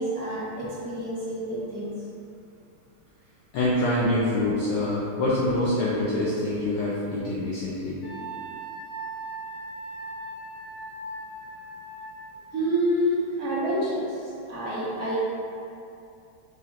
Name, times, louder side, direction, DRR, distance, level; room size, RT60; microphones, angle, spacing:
voice 1, 0.0-1.9 12.5-15.2, right 1 dB, 75° right, -8 dB, 0.8 m, -28 dB
voice 2, 3.5-8.0, left 1 dB, 80° left, -7 dB, 1.0 m, -25 dB
Wind instrument woodwind instrument, 8.0-12.2, right 2 dB, 60° left, 1.5 m, -38 dB
4.8 x 2.5 x 2.8 m, 2.6 s
omnidirectional pair, 2.4 m